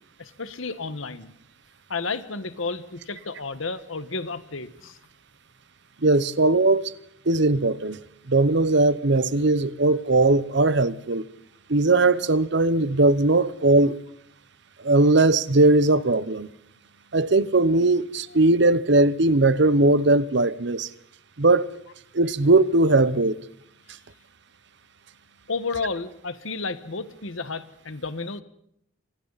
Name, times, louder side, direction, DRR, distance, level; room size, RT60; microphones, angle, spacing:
voice 1, 0.2-1.3 1.9-5.0 25.5-28.4, left 4 dB, 75° left, 1.5 m, -32 dB
voice 2, 6.0-6.9 7.3-8.0 8.3-11.2 11.7-14.0 14.8-16.5 17.1-20.9 21.4-21.7 22.1-23.3, right 2 dB, 55° right, 0.9 m, -19 dB
29.5 x 25.0 x 4.1 m
head